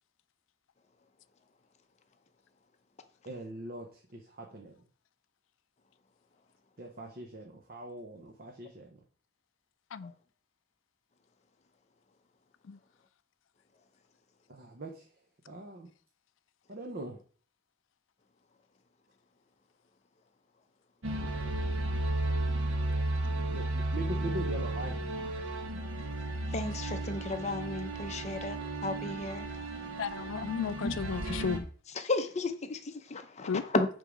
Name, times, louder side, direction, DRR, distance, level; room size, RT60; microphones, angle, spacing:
voice 1, 3.2-4.7 6.8-9.0 14.5-15.1 15.5-15.9 16.7-17.2 23.5-25.0, right 1 dB, 50° right, 0.9 m, -41 dB
sound 1, 21.0-31.6, right 1 dB, 85° right, 1.2 m, -34 dB
voice 2, 26.5-29.5 30.8-30.9 32.0-33.9, left 2 dB, 35° left, 0.7 m, -33 dB
voice 3, 30.0-31.7 33.5-33.6, left 6 dB, 70° left, 0.4 m, -34 dB
8.1 x 3.8 x 5.0 m
head